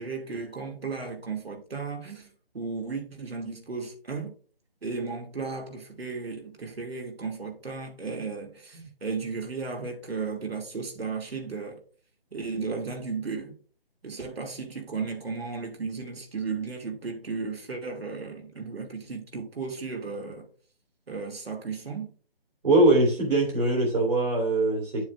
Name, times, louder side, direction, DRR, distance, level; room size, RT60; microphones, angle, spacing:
voice 1, 0.0-2.3 2.5-4.3 4.8-11.8 12.3-13.5 14.0-20.5 21.1-22.1, right 4 dB, 80° right, 2.3 m, -35 dB
voice 2, 22.6-25.0, right 2 dB, 60° right, 3.0 m, -22 dB
9.3 x 7.0 x 2.4 m
hypercardioid pair, 170°, 30 cm